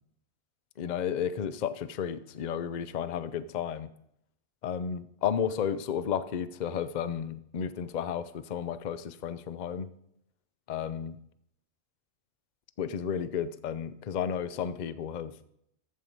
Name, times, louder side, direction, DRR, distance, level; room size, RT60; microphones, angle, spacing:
voice 1, 0.8-3.9 4.6-9.9 10.7-11.2 12.8-15.3, left 8 dB, 55° left, 13 dB, 0.5 m, -32 dB
14.0 x 5.6 x 6.7 m, 0.75 s
omnidirectional pair, 1.5 m